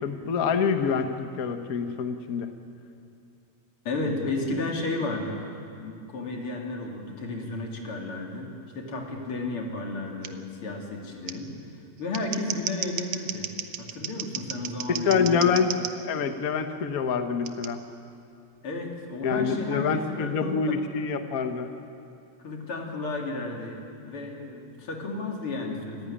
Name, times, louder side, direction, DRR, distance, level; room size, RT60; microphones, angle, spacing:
voice 1, 0.0-2.5 14.9-15.7 16.0-17.8 19.2-21.7, left 6 dB, 90° left, 8 dB, 0.7 m, -26 dB
voice 2, 3.9-5.4 5.8-11.6 12.0-13.5 13.8-15.5 18.6-20.8 22.4-26.1, left 2 dB, 45° left, 1 dB, 3.4 m, -33 dB
Scissors, 10.2-10.3 11.3-11.4 12.0-15.9 17.5-17.7, right 11 dB, 70° right, 2.0 m, -34 dB
26.0 x 15.5 x 9.9 m, 2.5 s
omnidirectional pair, 3.5 m